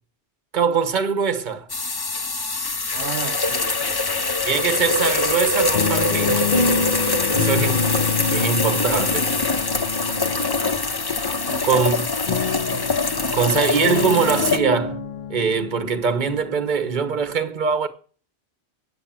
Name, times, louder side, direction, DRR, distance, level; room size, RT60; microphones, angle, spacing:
voice 1, 0.5-1.7 4.4-6.5 7.3-7.8 8.3-9.3 11.6-12.1 13.3-15.0 15.3-17.9, right 6 dB, 45° right, 1.1 m, -22 dB
sound 1, 1.7-14.6, left 3 dB, 25° left, 0.6 m, -23 dB
voice 2, 2.9-4.2 10.0-12.0, right 10 dB, 85° right, 1.0 m, -38 dB
sound 2, 3.5-4.2 4.5-17.3, left 4 dB, 50° left, 0.9 m, -28 dB
8.1 x 7.8 x 7.4 m
omnidirectional pair, 1.1 m